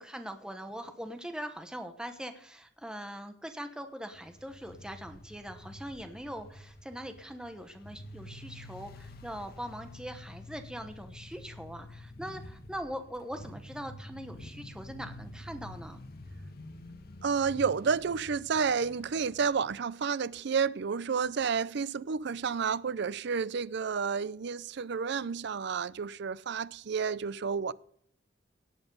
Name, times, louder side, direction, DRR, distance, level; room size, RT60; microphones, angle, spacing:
voice 1, 0.0-16.0, equal, 5° right, 1.0 m, -42 dB
sound 1, 4.1-19.6, left 1 dB, 55° left, 1.4 m, -48 dB
voice 2, 17.2-27.7, right 6 dB, 65° right, 0.5 m, -30 dB
17.5 x 8.0 x 5.4 m
head